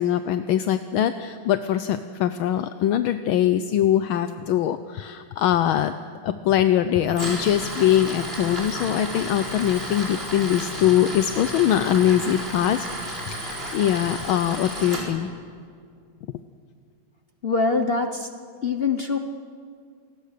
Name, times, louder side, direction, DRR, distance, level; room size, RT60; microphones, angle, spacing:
voice 1, 0.0-5.9 6.2-12.9 13.2-15.3, left 11 dB, 75° left, 10 dB, 1.5 m, -22 dB
Tools, 7.1-15.0, right 1 dB, 25° right, 4.7 m, -33 dB
voice 2, 17.4-18.3 18.6-19.2, left 4 dB, 45° left, 6 dB, 0.8 m, -23 dB
28.0 x 19.5 x 6.7 m, 2.2 s
omnidirectional pair, 2.3 m